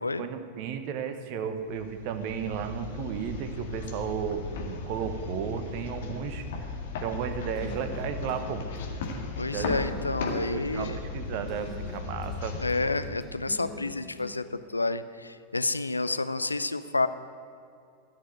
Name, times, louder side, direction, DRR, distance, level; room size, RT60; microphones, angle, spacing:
voice 1, 0.2-8.6 9.5-9.8 10.5-12.6, right 7 dB, 45° right, 9 dB, 1.1 m, -34 dB
sound 1, 1.7-13.7, left 3 dB, 55° left, 1.9 m, -37 dB
sound 2, 7.6-8.5 8.8-9.2 9.6-10.4 11.5-12.4 12.7-14.3, left 1 dB, 20° left, 1.9 m, -44 dB
voice 2, 9.4-11.0 12.6-17.1, left 3 dB, 80° left, 12 dB, 0.4 m, -29 dB
14.5 x 6.2 x 9.3 m, 2.4 s
figure-of-eight pair, 90°, 0 cm